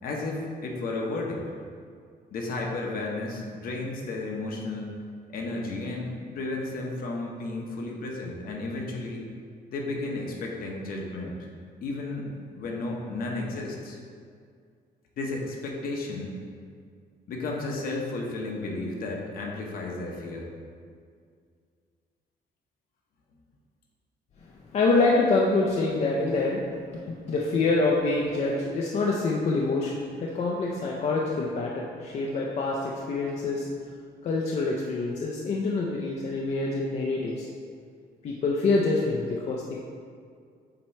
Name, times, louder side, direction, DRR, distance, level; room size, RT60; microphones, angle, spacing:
voice 1, 0.0-1.4 2.3-5.0 5.3-9.3 9.7-11.4 11.8-14.0 15.2-16.3 17.3-20.5, left 2 dB, 60° left, 0 dB, 1.0 m, -33 dB
voice 2, 24.7-33.7 34.2-37.5 38.2-39.8, left 3 dB, 40° left, -2 dB, 0.5 m, -26 dB
7.5 x 3.0 x 4.4 m, 2.2 s
cardioid pair, 155°, 17 cm